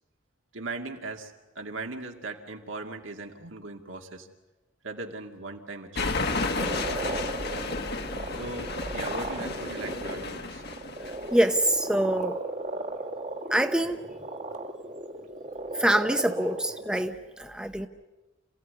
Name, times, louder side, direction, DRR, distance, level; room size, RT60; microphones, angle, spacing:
voice 1, 0.5-4.3 4.8-6.2 8.3-10.6, right 3 dB, 75° right, 3 dB, 2.4 m, -39 dB
sound 1, 5.9-11.5, left 3 dB, 55° left, 1.7 m, -32 dB
sound 2, 6.6-17.0, right 2 dB, 40° right, 1.7 m, -36 dB
voice 2, 11.3-12.4 13.5-14.0 15.7-17.9, right 1 dB, 5° right, 6 dB, 0.9 m, -25 dB
28.0 x 16.5 x 9.7 m, 1.1 s
head